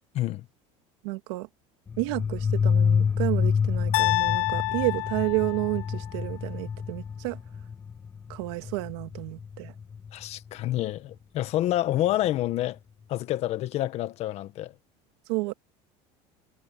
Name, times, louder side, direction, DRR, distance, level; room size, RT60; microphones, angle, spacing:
voice 1, 0.1-0.5 10.1-12.8 13.1-14.7, left 14 dB, 50° left, 1.4 m, -28 dB
voice 2, 1.0-1.5 2.0-7.4 8.3-9.7 15.3-15.5, right 24 dB, 90° right, 2.2 m, -30 dB
sound 1, 1.9-10.3, left 6 dB, 20° left, 1.5 m, -28 dB
sound 2, 3.9-6.1, left 27 dB, 75° left, 0.5 m, -28 dB
cardioid pair, 150°, 14 cm